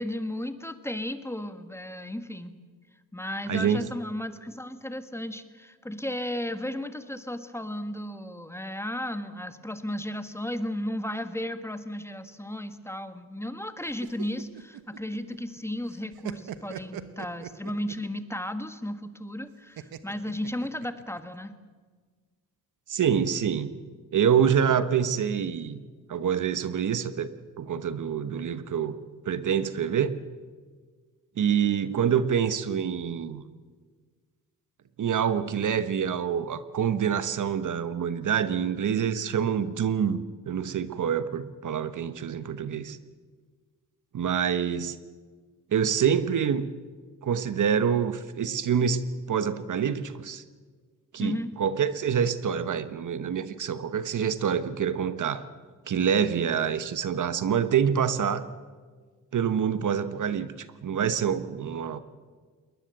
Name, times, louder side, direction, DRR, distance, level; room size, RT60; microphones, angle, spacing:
voice 1, 0.0-2.6 3.1-21.6 51.2-51.6, left 1 dB, 5° left, 10 dB, 1.6 m, -34 dB
voice 2, 3.5-3.9 22.9-23.7 24.1-25.8 26.1-27.3 27.6-29.0 29.3-30.2 31.4-33.4 35.0-43.0 44.1-45.0 45.7-46.7 47.2-50.4 51.1-55.5 55.9-58.5 59.3-62.0, right 8 dB, 55° right, 13 dB, 1.1 m, -26 dB
sound 1, 13.9-15.6 15.9-18.1 19.8-21.2, right 10 dB, 80° right, 1.2 m, -41 dB
21.0 x 20.0 x 7.8 m, 1.5 s
cardioid pair, 80°, 36 cm